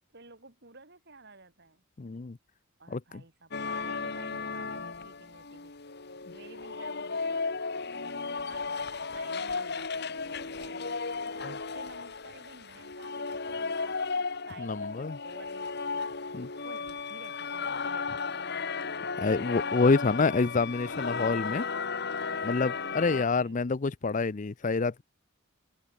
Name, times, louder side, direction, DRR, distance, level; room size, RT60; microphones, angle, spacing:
voice 1, 0.1-1.8 2.8-5.7 6.3-7.4 7.9-16.2 16.6-18.4 23.3-23.7, right 3 dB, 55° right, 5.4 m, -53 dB
voice 2, 2.0-2.4 2.9-3.0 14.6-15.2 16.4-16.5 19.2-21.6 22.4-25.0, left 4 dB, 40° left, 0.5 m, -27 dB
sound 1, 3.5-23.2, left 4 dB, 55° left, 1.8 m, -35 dB
head